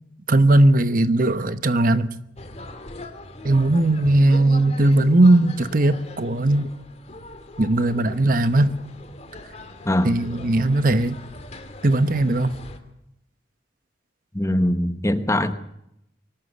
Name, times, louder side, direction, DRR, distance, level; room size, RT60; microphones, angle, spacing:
voice 1, 0.3-2.1 3.4-6.7 7.6-8.8 10.0-11.2 11.8-12.5, right 2 dB, 45° right, 1.0 m, -18 dB
sound 1, 2.4-12.8, left 1 dB, 35° left, 2.3 m, -41 dB
voice 2, 9.8-10.2 14.3-15.5, left 1 dB, 15° left, 1.1 m, -22 dB
23.5 x 12.5 x 9.7 m
head